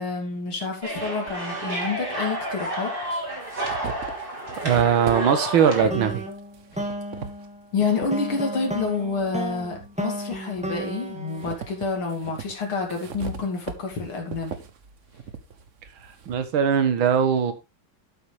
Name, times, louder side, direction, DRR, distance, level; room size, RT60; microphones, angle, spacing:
voice 1, 0.0-3.2 7.7-14.5, left 4 dB, 85° left, 3.5 m, -28 dB
sound 1, 0.8-5.9, right 1 dB, 25° right, 3.1 m, -30 dB
sound 2, 1.3-1.4 2.4-2.5 3.0-8.2 8.7-9.9 10.3-16.5, right 5 dB, 45° right, 1.1 m, -39 dB
voice 2, 4.6-6.2 16.3-17.5, right 7 dB, 75° right, 2.1 m, -20 dB
sound 3, 5.9-12.3, right 1 dB, 5° right, 1.4 m, -34 dB
12.5 x 7.8 x 3.3 m
omnidirectional pair, 2.3 m